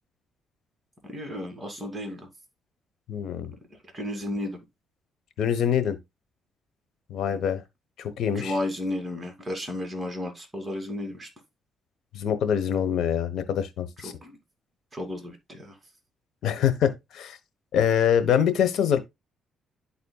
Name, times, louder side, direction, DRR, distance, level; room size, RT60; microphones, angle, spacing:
voice 1, 1.1-2.3 3.9-4.6 7.3-7.4 8.3-11.3 14.0-14.4 14.9-15.7, left 1 dB, 15° right, 2.6 m, -33 dB
voice 2, 3.1-3.5 5.4-6.0 7.1-7.6 8.0-8.6 12.1-14.1 16.4-17.4 17.7-19.0, left 8 dB, 70° left, 1.1 m, -24 dB
12.0 x 4.2 x 2.3 m
cardioid pair, 90°, 0 cm